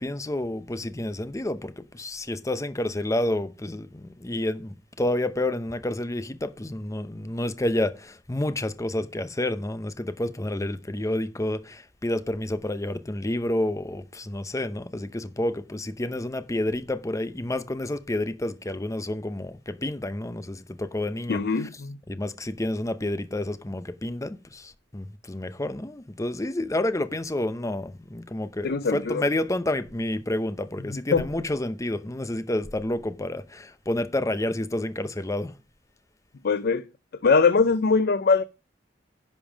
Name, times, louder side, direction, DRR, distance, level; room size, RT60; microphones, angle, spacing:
voice 1, 0.0-21.7 22.1-35.6, left 1 dB, 15° left, 0.7 m, -29 dB
voice 2, 21.3-22.0 28.6-29.2 31.1-31.2 36.4-36.9 37.2-38.4, left 4 dB, 55° left, 0.5 m, -22 dB
10.5 x 5.3 x 5.0 m
head